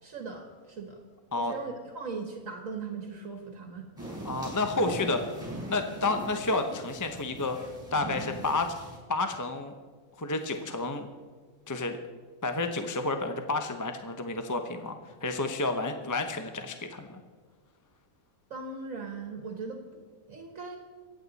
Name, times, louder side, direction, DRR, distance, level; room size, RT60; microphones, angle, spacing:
voice 1, 0.0-1.0 1.4-3.9 18.5-19.8 20.3-20.8, right 4 dB, 65° right, 3 dB, 1.7 m, -39 dB
sound 1, 4.0-9.0, right 1 dB, 10° right, 4.8 m, -40 dB
voice 2, 4.2-5.4 5.7-8.7 9.1-9.7 10.2-11.1 11.7-12.0 12.4-17.2, left 2 dB, 20° left, 6 dB, 0.6 m, -30 dB
24.0 x 8.7 x 4.1 m, 1.6 s
omnidirectional pair, 1.5 m